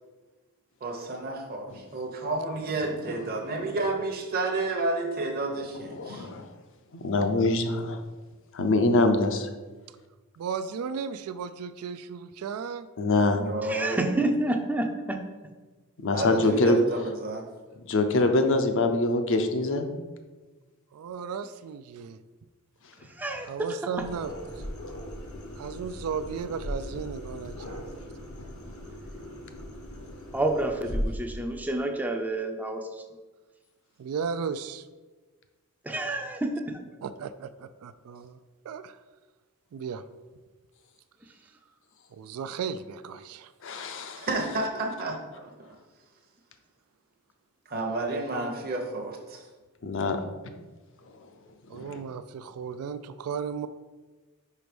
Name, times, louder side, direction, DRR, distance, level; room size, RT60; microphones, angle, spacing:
voice 1, 0.8-6.3 13.3-14.1 16.1-17.5 44.2-45.7 47.7-49.4, right 2 dB, 45° right, 0 dB, 0.8 m, -31 dB
voice 2, 5.9-6.5 6.9-8.0 8.5-9.5 13.0-13.4 16.0-16.8 17.9-19.9 43.6-44.3 49.8-50.2 51.7-52.0, left 2 dB, 60° left, 6 dB, 0.7 m, -24 dB
voice 3, 10.4-12.9 20.9-22.2 23.5-24.6 25.6-27.8 34.0-34.9 37.0-38.4 38.6-39.0 39.7-40.0 42.1-43.5 51.7-53.7, right 6 dB, 80° right, 12 dB, 0.3 m, -35 dB
voice 4, 13.6-15.3 23.1-24.1 30.3-33.0 35.8-36.8, right 1 dB, 10° right, 4 dB, 0.5 m, -29 dB
sound 1, 24.0-31.0, equal, 75° left, 1.1 m, -38 dB
5.2 x 4.6 x 5.1 m, 1.3 s
head